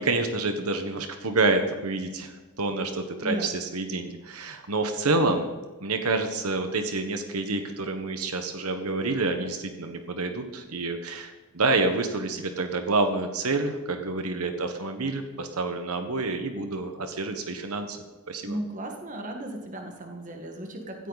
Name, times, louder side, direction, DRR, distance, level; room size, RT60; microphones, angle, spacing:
voice 1, 0.0-5.5 5.8-18.0 18.3-18.6, right 3 dB, 90° right, 7 dB, 1.4 m, -28 dB
voice 2, 18.4-21.1, right 1 dB, 35° right, 3 dB, 1.8 m, -35 dB
16.0 x 14.5 x 4.2 m, 1.2 s
head